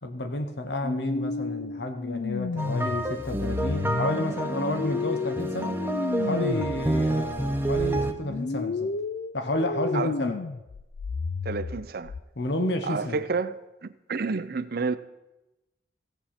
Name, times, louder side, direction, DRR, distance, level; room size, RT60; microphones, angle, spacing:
voice 1, 0.0-5.8 6.2-8.9 9.3-10.4 12.4-13.2, left 1 dB, 70° left, 1.0 m, -31 dB
sound 1, 0.8-6.9 7.2-12.2, left 4 dB, 55° left, 0.4 m, -32 dB
sound 2, 2.6-8.1, right 2 dB, 15° right, 0.8 m, -29 dB
voice 2, 11.4-12.1 12.8-15.0, right 4 dB, 60° right, 0.6 m, -30 dB
15.5 x 8.1 x 4.3 m
head